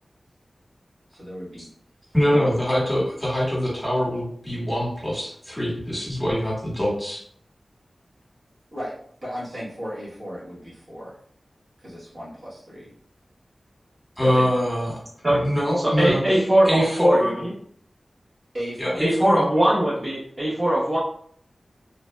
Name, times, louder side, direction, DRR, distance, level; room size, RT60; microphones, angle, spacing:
voice 1, 1.1-1.7 2.3-2.5 8.7-9.0 9.2-11.2 11.8-12.9 14.2-14.5 18.5-19.1, equal, 70° right, -9 dB, 1.5 m, -35 dB
voice 2, 2.1-7.2 14.2-15.0 15.4-17.3 18.8-19.4, equal, 5° left, -5 dB, 1.3 m, -23 dB
voice 3, 16.0-17.3 19.0-21.0, right 1 dB, 25° right, -9 dB, 1.0 m, -20 dB
3.0 x 2.6 x 2.2 m, 0.63 s
wide cardioid pair, 70°, 0 cm